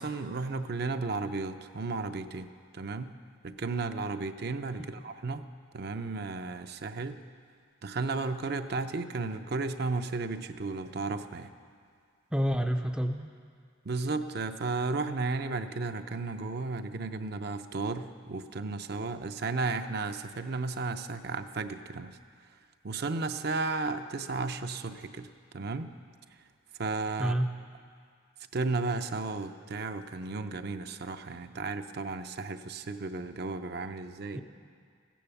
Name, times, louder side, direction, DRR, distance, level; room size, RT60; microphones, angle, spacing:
voice 1, 0.0-3.1 3.4-5.4 5.7-7.2 7.8-11.5 13.8-22.2 22.8-25.9 26.8-27.3 28.5-34.4, right 3 dB, 55° right, 8 dB, 0.6 m, -34 dB
voice 2, 12.3-13.3 27.2-27.5 34.3-34.4, equal, 5° right, 5 dB, 0.4 m, -28 dB
15.5 x 10.0 x 7.0 m, 2.1 s
head